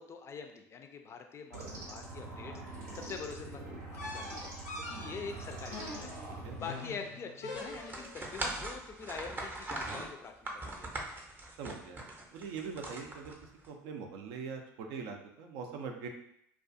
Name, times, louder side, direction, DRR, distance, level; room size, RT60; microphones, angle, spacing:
voice 1, 0.0-4.5 4.8-6.1 6.6-11.0, left 5 dB, 35° left, 5 dB, 0.4 m, -45 dB
sound 1, 1.5-6.6, right 2 dB, 85° right, 0.7 m, -44 dB
sound 2, 4.0-8.3, left 2 dB, 80° left, 0.6 m, -44 dB
sound 3, 7.5-13.7, right 2 dB, 25° right, 0.6 m, -41 dB
voice 2, 11.6-12.0 12.3-13.4 13.7-16.1, right 5 dB, 65° right, 4 dB, 0.4 m, -42 dB
2.4 x 2.3 x 2.5 m, 0.73 s
hypercardioid pair, 75°, 8 cm